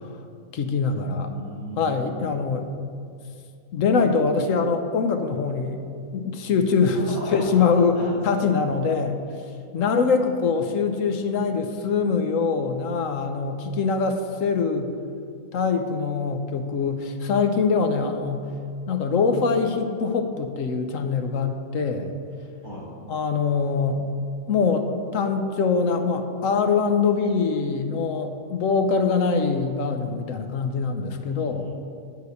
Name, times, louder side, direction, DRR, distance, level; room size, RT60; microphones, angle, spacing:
voice 1, 0.5-1.3 1.8-2.7 3.7-5.8 6.1-7.0 7.3-9.2 9.7-14.9 15.5-18.5 18.9-22.1 23.1-24.0 24.5-31.7, left 5 dB, 65° left, 7 dB, 1.0 m, -23 dB
voice 2, 1.1-2.1 6.9-8.6 22.6-22.9 31.2-31.7, equal, 30° right, -8 dB, 2.7 m, -37 dB
10.0 x 5.0 x 8.0 m, 2.3 s
omnidirectional pair, 1.6 m